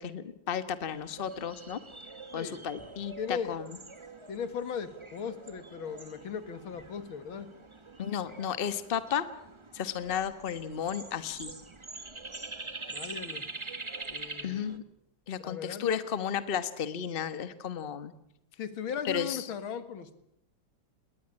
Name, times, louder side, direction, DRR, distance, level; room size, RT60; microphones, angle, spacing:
voice 1, 0.0-1.8 2.3-3.7 8.0-9.3 9.7-11.5 14.4-14.8 15.3-18.1 19.0-19.4, left 8 dB, 30° left, 13 dB, 1.2 m, -33 dB
sound 1, 0.8-14.8, right 3 dB, 20° right, 1.0 m, -45 dB
voice 2, 3.2-3.5 4.3-7.5 12.9-13.5 14.1-14.8 15.4-16.1 18.6-20.1, left 7 dB, 80° left, 12 dB, 2.5 m, -37 dB
20.5 x 19.0 x 9.8 m, 0.77 s
omnidirectional pair, 2.2 m